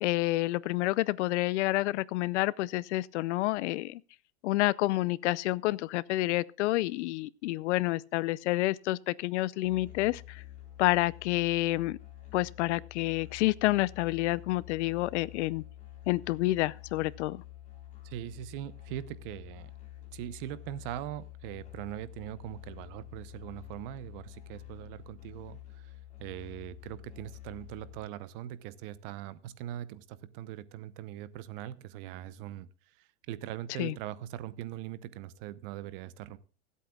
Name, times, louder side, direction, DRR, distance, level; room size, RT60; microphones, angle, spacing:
voice 1, 0.0-4.0 4.4-10.4 10.8-12.0 12.3-15.6 16.1-17.4 33.8-33.9, left 18 dB, 70° left, 0.6 m, -29 dB
Musical instrument, 9.6-28.0, left 14 dB, 20° left, 4.0 m, -48 dB
voice 2, 18.0-19.7 20.1-25.9 26.2-32.7 33.0-36.4, right 12 dB, 50° right, 0.9 m, -41 dB
24.5 x 8.4 x 2.3 m
supercardioid pair, 155°, 36 cm